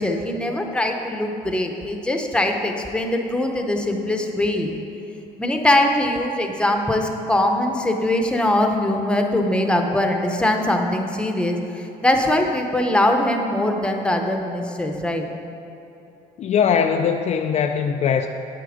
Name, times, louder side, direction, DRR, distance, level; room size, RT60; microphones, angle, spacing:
voice 1, 0.0-4.8 5.4-15.3, left 1 dB, 5° left, 3 dB, 0.8 m, -22 dB
voice 2, 16.4-18.3, left 7 dB, 45° left, 5 dB, 0.4 m, -20 dB
8.4 x 6.8 x 5.0 m, 2.9 s
cardioid pair, 110°, 17 cm